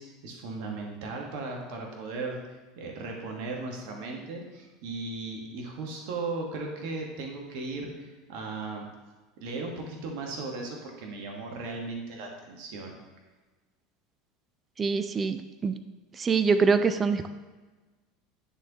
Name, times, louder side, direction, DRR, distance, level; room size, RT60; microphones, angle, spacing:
voice 1, 0.0-2.4 2.8-8.9 9.4-12.9, right 3 dB, 60° right, 1 dB, 1.3 m, -36 dB
voice 2, 14.8-15.7 16.2-17.3, right 5 dB, 25° right, 11 dB, 0.4 m, -24 dB
9.7 x 4.1 x 2.9 m, 1.3 s
figure-of-eight pair, 75°, 0 cm